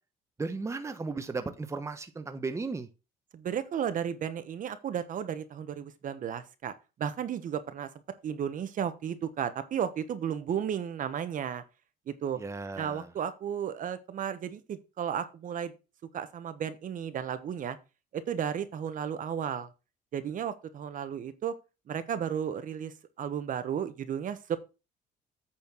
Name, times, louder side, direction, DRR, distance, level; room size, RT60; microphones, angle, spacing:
voice 1, 0.4-2.9 10.3-10.5 12.4-13.1, right 3 dB, 15° right, 1.0 m, -35 dB
voice 2, 3.3-6.7 7.0-7.9 8.2-11.6 12.1-12.4 12.8-15.7 16.1-17.8 18.1-19.7 20.1-21.5 21.9-24.6, right 8 dB, 50° right, 1.2 m, -33 dB
8.8 x 4.5 x 6.1 m
cardioid pair, 110°, 17 cm